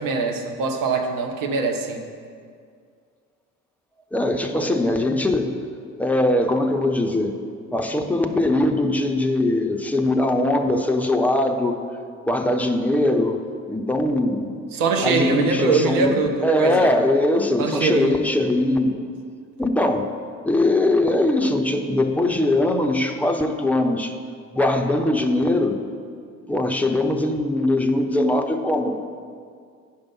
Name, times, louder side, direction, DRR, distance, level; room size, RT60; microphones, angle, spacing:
voice 1, 0.0-2.0 14.7-16.9 17.6-18.2, right 4 dB, 55° right, 4 dB, 1.2 m, -23 dB
voice 2, 4.1-5.5 6.0-7.4 7.7-11.8 12.3-14.6 15.0-19.0 19.6-20.1 20.4-24.1 24.5-25.8 26.5-29.0, left 1 dB, 5° left, 3 dB, 0.8 m, -21 dB
10.0 x 5.3 x 5.6 m, 2.1 s
figure-of-eight pair, 50°, 42 cm